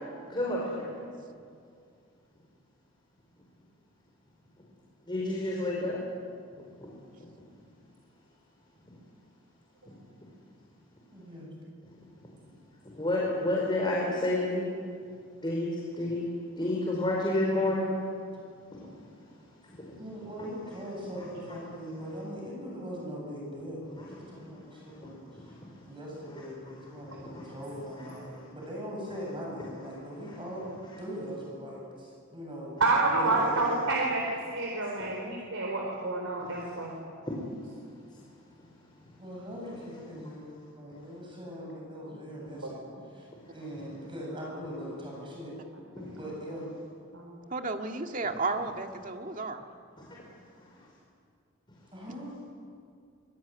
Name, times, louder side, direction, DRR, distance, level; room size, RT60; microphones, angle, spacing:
voice 1, 0.3-0.9 5.1-6.0 6.8-6.9 12.8-14.7 15.4-16.3 16.6-17.9 18.7-18.9 19.6-20.0 21.2-21.3 24.0-25.6 26.7-27.6 28.0-28.1 35.0-35.1 36.4-36.7 37.2-37.4 46.0-46.1 50.1-50.2 50.7-50.8, left 1 dB, 25° left, -3 dB, 4.6 m, -31 dB
voice 2, 11.1-11.5 16.6-17.0 19.9-25.5 25.8-30.6 31.0-32.8 33.0-33.7 39.2-40.5 40.7-45.7 46.1-46.7 51.9-52.3, equal, 25° right, -2 dB, 8.0 m, -41 dB
voice 3, 32.8-34.2 34.5-36.9 46.0-46.1 47.1-47.4, right 3 dB, 80° right, -1 dB, 4.2 m, -28 dB
voice 4, 47.5-49.6, right 3 dB, 40° right, 4 dB, 2.0 m, -33 dB
25.5 x 22.0 x 9.7 m, 2.3 s
head